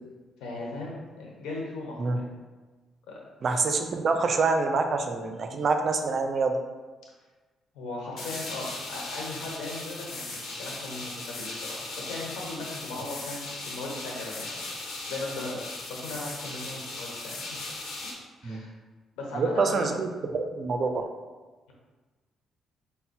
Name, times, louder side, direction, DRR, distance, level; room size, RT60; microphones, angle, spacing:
voice 1, 0.4-2.3 3.1-3.2 7.7-14.6 15.1-17.6 18.4-18.7 19.2-19.9, left 2 dB, 90° left, -2 dB, 1.1 m, -38 dB
voice 2, 3.4-6.5 18.4-18.6 19.3-21.1, right 4 dB, 50° right, 5 dB, 0.5 m, -26 dB
sound 1, 8.2-18.1, left 2 dB, 70° left, 1.0 m, -38 dB
5.3 x 2.1 x 4.3 m, 1.3 s
cardioid pair, 90°, 0 cm